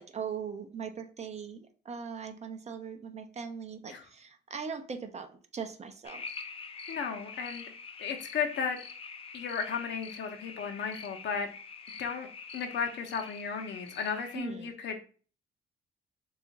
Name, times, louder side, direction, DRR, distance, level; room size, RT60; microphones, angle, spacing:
voice 1, 0.0-6.2 14.3-14.7, right 6 dB, 35° right, 7 dB, 0.5 m, -40 dB
sound 1, 6.0-14.4, left 5 dB, 30° left, 0.4 m, -45 dB
voice 2, 6.9-7.6 8.0-8.8 9.3-11.5 12.0-12.3 12.5-14.9, left 6 dB, 65° left, 4 dB, 0.7 m, -34 dB
2.8 x 2.4 x 3.9 m, 0.39 s
cardioid pair, 90°, 20 cm